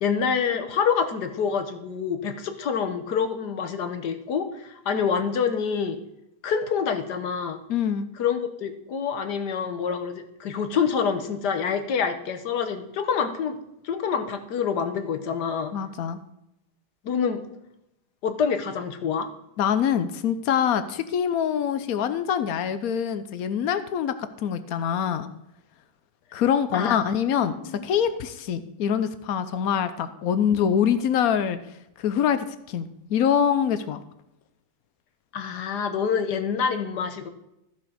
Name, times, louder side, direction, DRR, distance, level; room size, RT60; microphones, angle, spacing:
voice 1, 0.0-6.0 6.4-7.6 8.2-13.6 13.8-15.7 17.0-17.4 18.2-19.3 26.7-27.8 35.3-37.3, left 6 dB, 60° left, 8 dB, 1.4 m, -27 dB
voice 2, 7.7-8.1 15.7-16.2 19.6-25.3 26.3-27.6 27.8-31.6 32.0-34.0, left 8 dB, 75° left, 12 dB, 0.8 m, -24 dB
14.0 x 6.0 x 5.0 m, 0.84 s
omnidirectional pair, 2.3 m